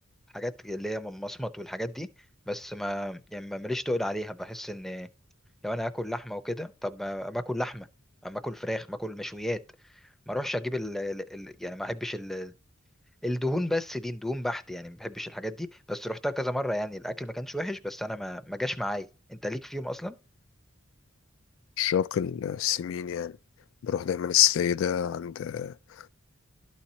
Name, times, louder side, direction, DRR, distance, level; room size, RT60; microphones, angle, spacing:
voice 1, 0.3-2.1 2.5-5.1 5.6-7.9 8.2-9.6 10.3-12.5 13.2-20.2, left 1 dB, ahead, 0.6 m, -33 dB
voice 2, 21.8-23.4 23.8-26.1, left 10 dB, 70° left, 0.3 m, -27 dB
12.5 x 4.3 x 2.7 m
head